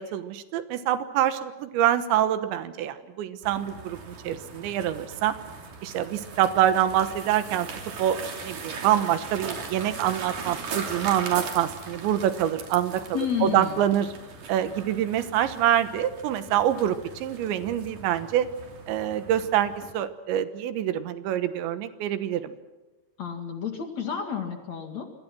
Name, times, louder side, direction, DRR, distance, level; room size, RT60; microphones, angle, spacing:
voice 1, 0.0-5.4 5.8-7.7 8.0-8.2 8.4-14.1 14.5-18.5 18.9-22.5, right 11 dB, 80° right, 11 dB, 3.5 m, -25 dB
sound 1, 3.4-19.9, right 4 dB, 50° right, 4.2 m, -39 dB
voice 2, 13.1-13.8 23.2-25.0, left 8 dB, 50° left, 4 dB, 2.6 m, -30 dB
27.5 x 24.5 x 6.1 m, 1.1 s
omnidirectional pair, 5.2 m